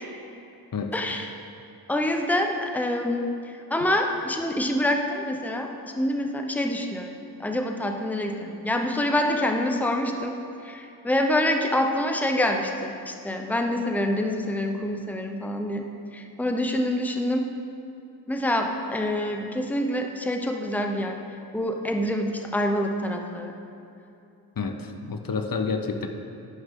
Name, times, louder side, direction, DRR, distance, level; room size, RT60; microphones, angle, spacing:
voice 1, 0.9-1.3 1.9-5.7 6.0-7.1 7.4-15.9 16.1-17.5 18.3-21.2 21.5-23.5, left 1 dB, 5° left, 3 dB, 0.8 m, -26 dB
voice 2, 24.6-26.1, left 4 dB, 60° left, 5 dB, 0.8 m, -29 dB
11.0 x 9.6 x 3.7 m, 2.7 s
wide cardioid pair, 85°, 38 cm